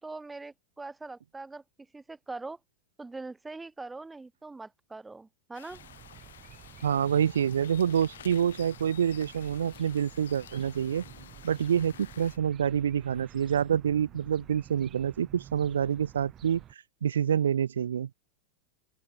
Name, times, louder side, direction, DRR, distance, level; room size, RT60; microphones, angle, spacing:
voice 1, 0.0-1.6 1.9-2.6 3.0-5.8, right 3 dB, 10° right, 3.8 m, -42 dB
sound 1, 5.5-12.4, left 10 dB, 65° left, 6.8 m, -51 dB
sound 2, 5.7-16.7, right 11 dB, 30° right, 6.0 m, -51 dB
voice 2, 6.8-11.0 11.4-18.1, right 8 dB, 65° right, 0.5 m, -27 dB
open air
figure-of-eight pair, 90°, 0 cm